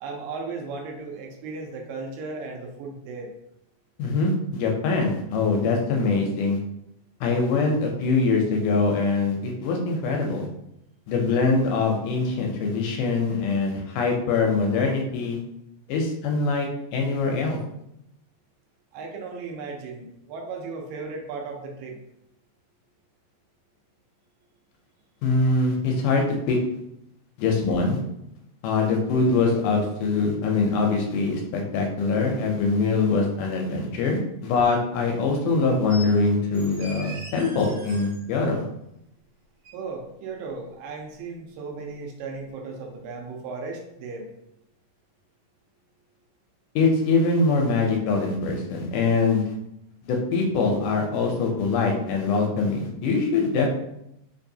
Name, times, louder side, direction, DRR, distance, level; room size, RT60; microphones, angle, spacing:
voice 1, 0.0-3.3 18.9-22.0 39.7-44.3, right 4 dB, 85° right, 1 dB, 2.4 m, -36 dB
voice 2, 4.0-6.6 7.2-10.5 11.1-15.4 15.9-17.6 25.2-26.6 27.4-28.0 28.6-38.6 46.8-49.5 50.1-53.7, left 3 dB, 80° left, 1 dB, 1.9 m, -23 dB
sound 1, 35.9-36.1 36.5-38.2 39.6-39.7, equal, 60° right, 1.9 m, -41 dB
5.3 x 2.4 x 2.6 m, 0.80 s
omnidirectional pair, 4.0 m